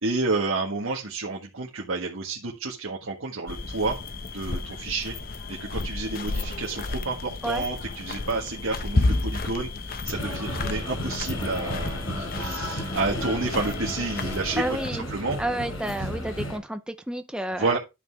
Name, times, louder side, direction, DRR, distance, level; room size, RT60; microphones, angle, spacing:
voice 1, 0.0-4.0 4.3-5.1 5.5-14.6 15.1-15.4 17.6-17.8, right 3 dB, 85° right, 1.6 m, -30 dB
sound 1, 3.5-14.9, left 2 dB, 45° left, 0.8 m, -32 dB
sound 2, 10.1-16.6, equal, 85° left, 5.8 m, -33 dB
voice 2, 14.6-15.1 15.4-17.8, right 1 dB, 5° right, 0.6 m, -30 dB
12.0 x 5.8 x 3.4 m
head